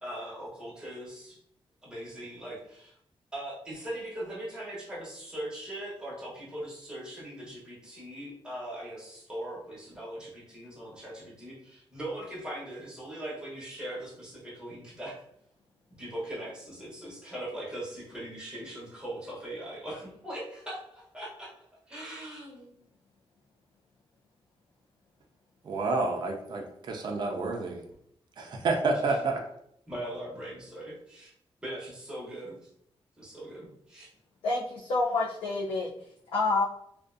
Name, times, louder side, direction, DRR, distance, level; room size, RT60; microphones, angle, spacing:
voice 1, 0.0-1.4 1.8-3.0 3.3-15.2 16.0-21.5 21.9-22.7 28.9-29.2 29.9-31.3 31.6-32.7 33.2-34.1, right 1 dB, 10° right, -6 dB, 0.8 m, -40 dB
voice 2, 25.7-27.8 28.4-29.4, right 3 dB, 45° right, 2 dB, 0.3 m, -29 dB
voice 3, 34.4-35.9 36.3-36.6, left 3 dB, 80° left, -5 dB, 0.4 m, -27 dB
2.5 x 2.2 x 2.4 m, 0.72 s
wide cardioid pair, 175°, 10 cm